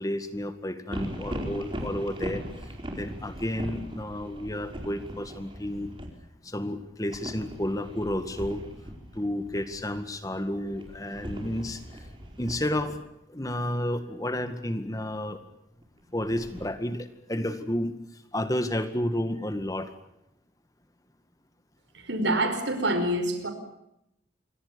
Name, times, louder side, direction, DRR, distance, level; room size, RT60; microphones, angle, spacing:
voice 1, 0.0-5.9 6.4-8.6 9.1-12.1 12.4-13.0 13.3-15.4 16.1-19.9, left 1 dB, 20° left, 9 dB, 2.0 m, -31 dB
sound 1, 0.9-6.1 7.1-13.0 15.8-16.7, equal, 25° right, 4.8 m, -39 dB
voice 2, 22.0-23.5, right 1 dB, 80° right, 9 dB, 5.3 m, -26 dB
28.0 x 23.5 x 6.9 m, 0.81 s
head